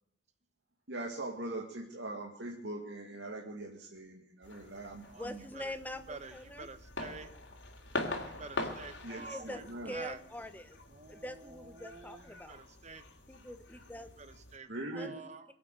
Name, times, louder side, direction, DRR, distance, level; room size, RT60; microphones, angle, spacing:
voice 1, 0.9-5.4 9.0-10.0 14.7-15.2, right 2 dB, 70° right, 0 dB, 2.1 m, -41 dB
sound 1, 4.4-14.6, left 2 dB, 70° left, 3.1 m, -44 dB
voice 2, 5.1-6.7 9.2-10.8 11.1-12.6 13.3-14.1 14.9-15.5, left 1 dB, 10° left, 9 dB, 1.1 m, -44 dB
voice 3, 6.1-7.3 8.1-10.2 10.9-13.0 14.2-15.5, right 3 dB, 40° right, 11 dB, 1.1 m, -48 dB
23.0 x 8.6 x 6.7 m, 0.73 s
head